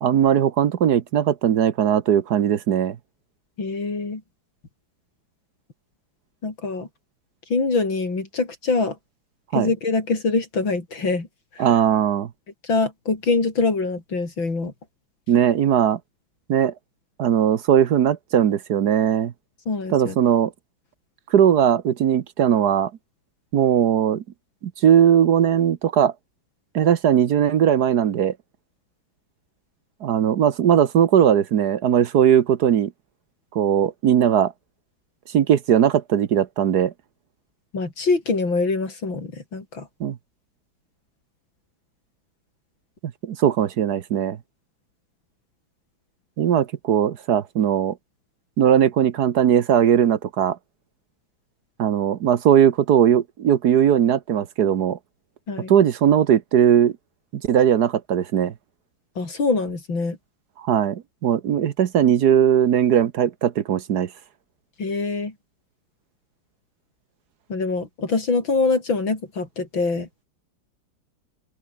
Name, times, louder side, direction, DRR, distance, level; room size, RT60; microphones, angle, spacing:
voice 1, 0.0-3.0 9.5-9.7 11.6-12.3 15.3-16.0 16.5-16.7 17.2-19.3 19.9-20.5 21.3-22.9 23.5-24.2 24.8-26.1 26.7-28.3 30.0-32.9 33.5-34.5 35.3-36.9 40.0-40.2 43.2-44.4 46.4-48.0 48.6-50.6 51.8-55.0 55.7-56.9 57.3-58.5 60.6-64.1, right 9 dB, 60° right, 1.4 m, -19 dB
voice 2, 3.6-4.2 6.4-6.9 7.5-9.0 9.5-11.3 11.6-11.7 12.6-14.7 19.7-20.2 37.7-39.9 55.5-55.7 59.2-60.2 64.8-65.3 67.5-70.1, left 3 dB, 90° left, 5.4 m, -24 dB
open air
omnidirectional pair, 2.1 m